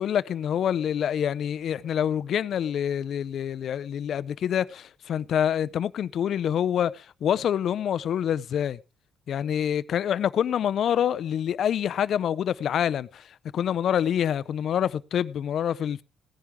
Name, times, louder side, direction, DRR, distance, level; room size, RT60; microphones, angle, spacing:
voice 1, 0.0-8.8 9.3-13.2 13.5-16.0, left 9 dB, 65° left, 0.5 m, -26 dB
16.5 x 10.5 x 3.6 m
cardioid pair, 90°, 0 cm